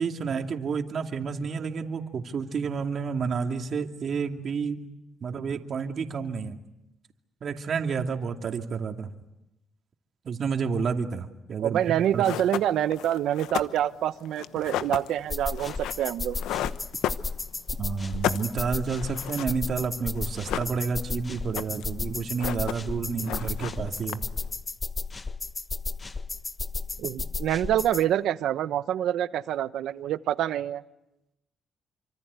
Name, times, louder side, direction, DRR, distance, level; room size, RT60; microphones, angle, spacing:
voice 1, 0.0-4.8 5.2-6.6 7.4-9.1 10.2-11.8 12.1-12.2 17.8-24.2, right 5 dB, 55° right, 4 dB, 2.5 m, -30 dB
voice 2, 11.6-16.4 27.0-30.8, right 11 dB, 80° right, 13 dB, 1.0 m, -26 dB
sound 1, 11.8-11.9 12.2-17.7 18.0-19.6 19.8-19.9 20.2-21.1 21.4-22.0 22.2-23.0 23.2-24.5, left 12 dB, 90° left, 1.0 m, -33 dB
sound 2, 15.3-28.0, left 4 dB, 30° left, 1.2 m, -34 dB
27.0 x 25.5 x 8.3 m, 0.91 s
cardioid pair, 90°, 0 cm